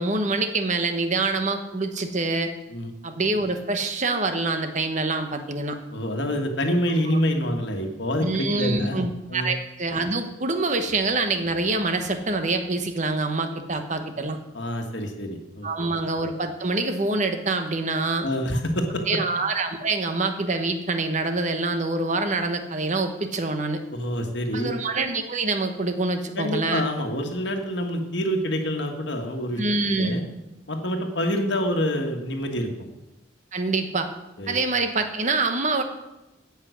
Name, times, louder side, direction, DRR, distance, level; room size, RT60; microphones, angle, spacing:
voice 1, 0.0-2.5 3.0-5.8 8.2-14.4 15.6-18.3 19.1-23.8 24.5-26.8 29.6-30.2 33.5-34.1 34.5-35.8, right 3 dB, 40° right, 7 dB, 1.1 m, -25 dB
voice 2, 5.9-9.5 14.5-15.9 18.2-19.2 23.9-24.7 26.3-29.6 30.0-30.2 30.7-32.9 34.4-34.6, equal, 60° left, 3 dB, 1.5 m, -27 dB
16.0 x 5.8 x 6.3 m, 0.99 s
head